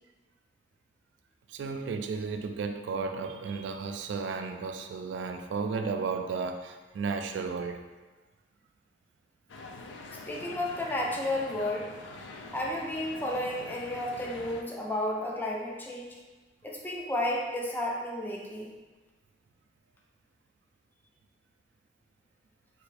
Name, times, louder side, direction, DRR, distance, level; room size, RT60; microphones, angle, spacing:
voice 1, 1.5-7.8, right 5 dB, 80° right, 5 dB, 0.3 m, -33 dB
sound 1, 9.5-14.6, left 3 dB, 85° left, 0.3 m, -45 dB
voice 2, 10.3-11.9 12.5-16.2 16.6-18.7, left 1 dB, 10° left, -2 dB, 0.4 m, -32 dB
3.3 x 2.5 x 3.2 m, 1.2 s
head